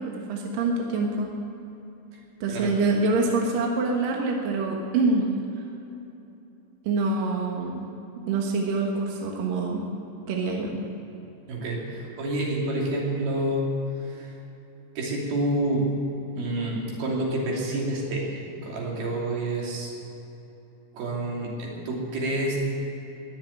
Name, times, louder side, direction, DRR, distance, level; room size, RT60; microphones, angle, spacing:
voice 1, 0.0-1.3 2.4-5.3 6.8-7.9 8.3-9.8 10.3-10.8, right 3 dB, 70° right, 0 dB, 2.2 m, -25 dB
voice 2, 11.5-13.7 14.0-14.3 15.0-15.9 16.4-19.9 20.9-22.6, right 1 dB, 50° right, -3 dB, 4.3 m, -28 dB
21.5 x 7.3 x 9.2 m, 3.0 s
omnidirectional pair, 6.0 m